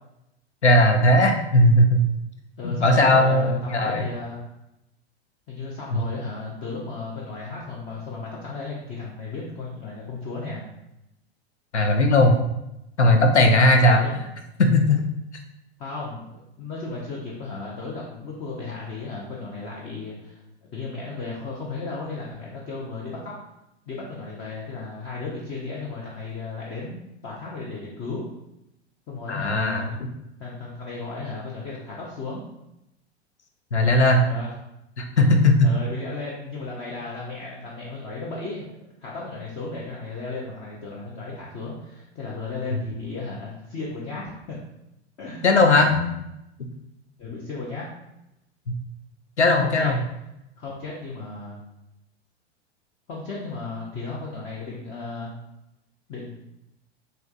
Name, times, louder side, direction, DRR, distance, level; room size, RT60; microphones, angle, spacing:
voice 1, 0.6-2.0 2.6-4.0 5.9-6.0 11.7-12.4 13.0-14.0 14.6-15.0 29.3-29.9 33.7-34.2 35.0-35.7 45.4-46.1 49.4-50.0, left 1 dB, 85° left, 4 dB, 0.5 m, -18 dB
voice 2, 2.6-4.4 5.5-10.7 13.8-14.3 15.8-23.3 23.9-28.2 29.1-29.9 30.4-32.4 33.8-33.9 34.2-34.5 35.6-38.7 39.0-44.6 45.2-45.7 47.2-47.9 49.6-49.9 50.6-51.6 53.1-55.4 56.1-56.3, left 3 dB, 20° left, -4 dB, 0.3 m, -35 dB
3.3 x 2.7 x 2.3 m, 0.87 s
figure-of-eight pair, 90°, 33 cm